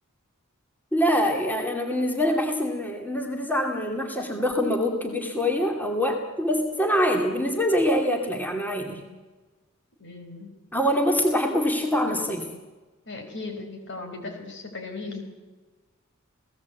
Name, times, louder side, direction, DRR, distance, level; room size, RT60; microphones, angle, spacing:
voice 1, 0.9-9.0 10.7-12.5, equal, 10° left, 3 dB, 2.4 m, -24 dB
voice 2, 10.0-10.5 13.1-15.2, left 3 dB, 60° left, 5 dB, 4.9 m, -37 dB
29.5 x 17.5 x 8.4 m, 1.3 s
head